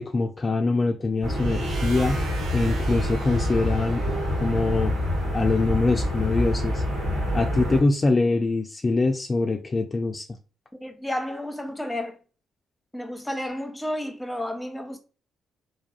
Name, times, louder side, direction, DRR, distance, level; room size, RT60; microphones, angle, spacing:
voice 1, 0.0-2.2 2.5-4.9 5.3-6.8 7.3-10.3, left 3 dB, 35° left, 0.3 m, -24 dB
sound 1, 1.2-7.8, equal, 90° right, 1.3 m, -26 dB
sound 2, 1.4-5.2, right 3 dB, 70° right, 0.6 m, -41 dB
voice 2, 10.7-12.2 12.9-15.0, left 1 dB, 5° left, 0.7 m, -31 dB
3.4 x 2.2 x 2.3 m
hypercardioid pair, 50°, 0 cm